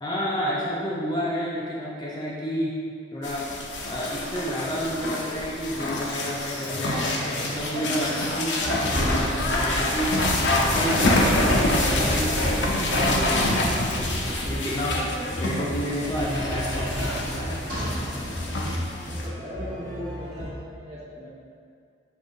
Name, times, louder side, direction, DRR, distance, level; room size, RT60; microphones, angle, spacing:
voice 1, 0.0-2.8 3.1-3.5 3.9-7.1 7.4-17.6, equal, 20° left, -6 dB, 0.5 m, -30 dB
sound 1, 3.2-19.3, left 2 dB, 70° left, 0.6 m, -27 dB
sound 2, 8.3-8.4 8.6-20.5, equal, 50° right, 1.4 m, -30 dB
voice 2, 18.7-21.3, equal, 35° right, -9 dB, 1.2 m, -39 dB
5.4 x 2.6 x 3.7 m, 2.3 s
head